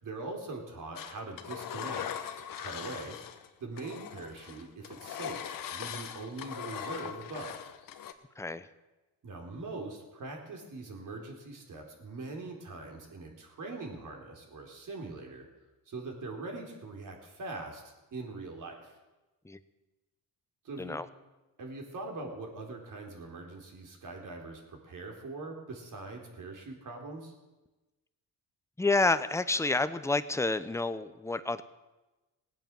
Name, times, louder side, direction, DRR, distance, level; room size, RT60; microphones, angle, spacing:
voice 1, 0.0-2.1 2.6-3.2 3.6-7.6 9.2-15.5 15.9-17.8 18.1-19.0 20.6-21.0 21.6-27.3, right 3 dB, 60° right, 1 dB, 4.0 m, -42 dB
Engine, 1.0-3.5 3.8-8.1, left 9 dB, 65° left, 1.2 m, -40 dB
voice 2, 8.4-8.7 19.4-19.6 20.8-21.1 28.8-31.6, left 3 dB, 10° left, 12 dB, 0.8 m, -29 dB
17.5 x 9.0 x 7.6 m, 1.1 s
cardioid pair, 85°, 36 cm